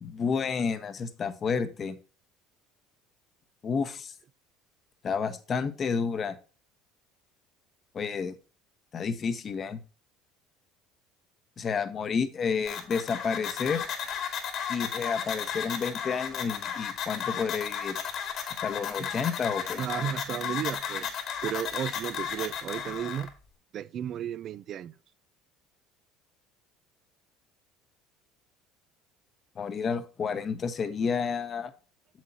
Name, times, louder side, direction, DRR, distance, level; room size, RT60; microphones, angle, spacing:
voice 1, 0.0-2.0 3.6-4.1 5.0-6.4 7.9-8.3 8.9-9.8 11.6-13.8 14.7-18.0 18.6-19.8 29.6-31.7, left 5 dB, 40° left, 1.1 m, -30 dB
sound 1, 12.7-23.3, left 8 dB, 60° left, 2.3 m, -34 dB
voice 2, 19.8-23.3 23.7-24.9, right 10 dB, 50° right, 0.5 m, -34 dB
7.5 x 7.4 x 2.8 m
supercardioid pair, 85°, 0 cm